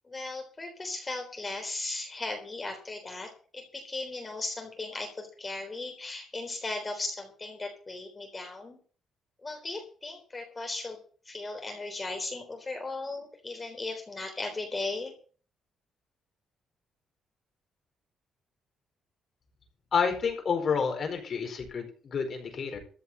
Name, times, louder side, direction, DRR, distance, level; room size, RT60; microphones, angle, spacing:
voice 1, 0.1-8.8 9.4-11.0 11.3-15.1, left 2 dB, 25° left, 3 dB, 3.7 m, -37 dB
voice 2, 19.9-22.8, left 6 dB, 50° left, 4 dB, 4.9 m, -29 dB
14.5 x 6.1 x 8.7 m, 0.42 s
cardioid pair, 90°, 0 cm